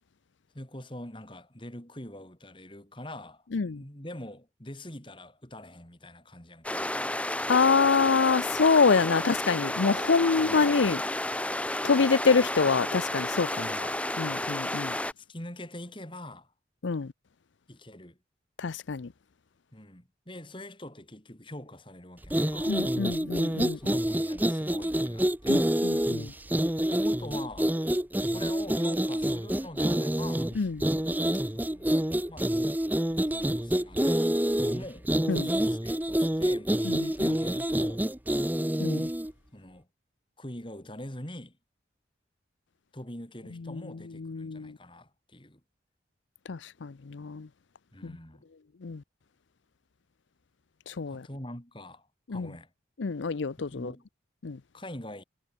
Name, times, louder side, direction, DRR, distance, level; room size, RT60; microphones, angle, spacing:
voice 1, 0.5-7.0 10.4-10.7 13.6-13.9 15.2-16.5 17.7-18.2 19.7-22.8 23.7-25.7 26.9-27.8 28.2-30.6 31.5-31.9 32.3-35.1 35.5-38.0 39.5-39.9 40.4-41.6 42.9-45.6 47.9-48.4 51.1-52.7 53.6-54.1 54.7-55.2, left 1 dB, 25° left, 4.0 m, -44 dB
sound 1, 6.6-15.1, left 1 dB, 5° left, 3.1 m, -31 dB
voice 2, 7.5-11.0 11.8-13.9 14.2-15.0 16.8-17.1 18.6-19.1 22.7-23.9 25.5-26.3 30.6-30.8 35.3-35.5 36.8-37.4 38.8-39.1 43.7-43.8 44.2-44.8 46.5-47.5 48.0-48.2 48.8-49.0 50.9-51.3 52.3-52.5 53.0-53.9 54.4-54.6, left 5 dB, 75° left, 0.6 m, -26 dB
sound 2, 22.2-39.3, right 1 dB, 10° right, 0.8 m, -27 dB
head